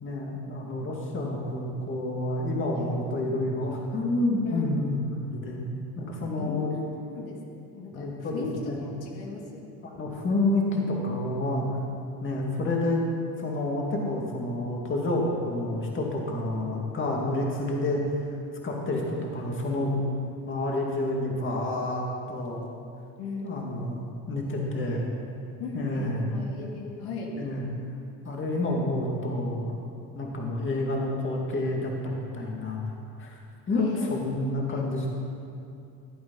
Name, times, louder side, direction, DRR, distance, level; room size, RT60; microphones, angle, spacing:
voice 1, 0.0-5.6 6.0-6.7 7.9-8.8 9.8-11.7 12.2-13.0 13.4-18.4 18.6-20.0 20.4-22.0 22.3-22.6 23.4-24.0 24.3-25.0 25.7-26.3 27.3-27.7 28.2-29.7 30.1-32.8 33.2-33.3 33.7-35.1, left 2 dB, 30° left, -1 dB, 2.4 m, -29 dB
voice 2, 2.7-3.1 3.7-3.9 4.5-4.9 6.3-6.8 7.2-7.4 7.7-8.5 8.8-9.7 23.2-23.9 25.6-27.3 33.8-34.2 34.4-35.0, left 3 dB, 75° left, -1 dB, 2.4 m, -38 dB
16.0 x 8.8 x 5.6 m, 2.7 s
cardioid pair, 115°, 38 cm